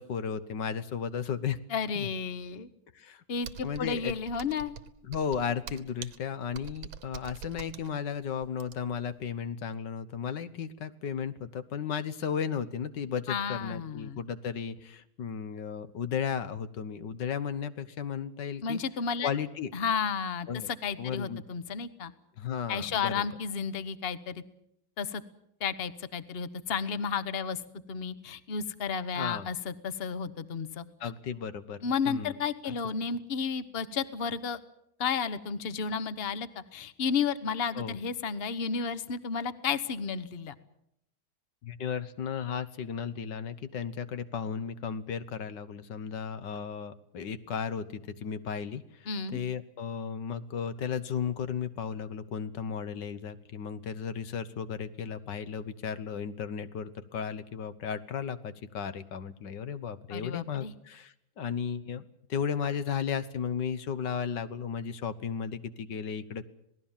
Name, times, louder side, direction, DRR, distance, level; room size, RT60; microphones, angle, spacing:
voice 1, 0.0-1.6 1.9-2.1 2.9-3.2 3.6-4.2 5.1-18.8 19.2-19.7 20.5-20.7 21.0-21.4 22.4-23.2 29.1-29.5 31.0-31.8 32.1-32.3 32.6-32.7 37.7-38.0 41.6-66.5, left 7 dB, 65° left, 13 dB, 1.7 m, -35 dB
voice 2, 1.7-2.7 3.3-4.7 13.3-14.2 18.6-19.3 19.7-22.1 22.7-24.4 25.0-25.2 25.6-27.6 27.9-30.8 31.8-34.6 35.0-40.5 49.1-49.4 60.1-60.7, left 6 dB, 40° left, 14 dB, 1.0 m, -32 dB
Computer keyboard, 3.4-9.1, right 7 dB, 85° right, 2.0 m, -45 dB
27.0 x 18.5 x 7.3 m, 0.76 s
omnidirectional pair, 2.2 m